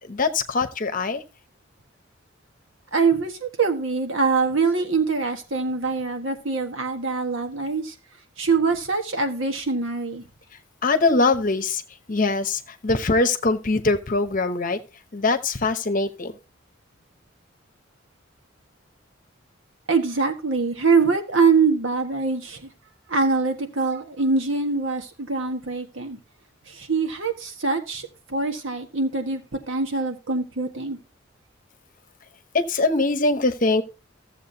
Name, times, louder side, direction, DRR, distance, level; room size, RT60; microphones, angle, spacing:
voice 1, 0.0-1.2 10.8-14.8 15.1-16.3 32.5-33.8, left 3 dB, 40° left, 0.9 m, -22 dB
voice 2, 2.9-7.9 8.4-10.2 19.9-22.7 23.1-26.2 26.7-29.4 29.7-31.0, right 4 dB, 70° right, 1.5 m, -23 dB
14.5 x 7.4 x 2.8 m
head